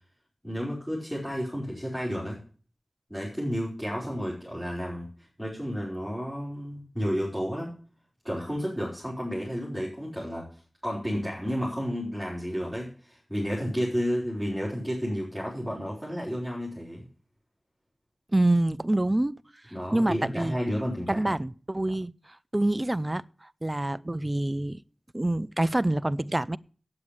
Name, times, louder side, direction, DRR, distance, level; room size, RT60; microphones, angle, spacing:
voice 1, 0.4-2.4 3.1-5.1 5.4-7.7 8.2-17.0 19.7-21.2, equal, 5° left, 5.2 m, -31 dB
voice 2, 18.3-19.4 19.9-20.6 21.1-22.1 22.5-23.2 23.6-24.8 25.1-26.6, right 1 dB, 25° right, 0.5 m, -26 dB
8.7 x 8.2 x 8.6 m
wide cardioid pair, 55°, 0 cm